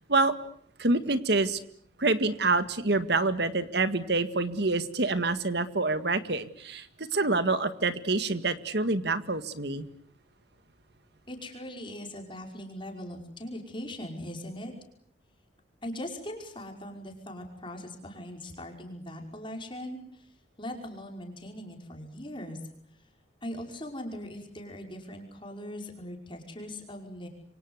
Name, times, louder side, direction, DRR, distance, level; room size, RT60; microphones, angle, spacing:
voice 1, 0.8-1.6 2.0-9.9, right 3 dB, 60° right, 12 dB, 1.9 m, -27 dB
voice 2, 11.3-14.7 15.8-20.3 20.6-22.6 23.4-27.3, left 1 dB, 25° left, 2 dB, 5.4 m, -40 dB
28.0 x 25.0 x 8.1 m, 0.65 s
head